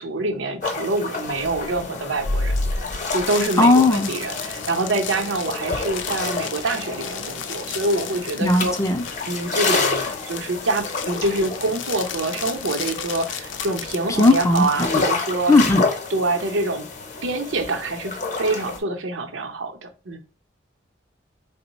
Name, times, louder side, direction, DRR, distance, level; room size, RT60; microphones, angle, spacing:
voice 1, 0.0-8.8 9.3-15.5 16.1-16.9 17.2-20.2, right 2 dB, 85° right, 0.7 m, -26 dB
sound 1, 0.6-18.8, left 4 dB, 40° left, 0.7 m, -30 dB
sound 2, 1.2-14.9, left 4 dB, 75° left, 0.5 m, -33 dB
voice 2, 3.6-4.1 8.4-9.0 14.2-15.0 15.5-15.8, left 2 dB, 15° left, 0.3 m, -17 dB
3.7 x 2.1 x 4.0 m
head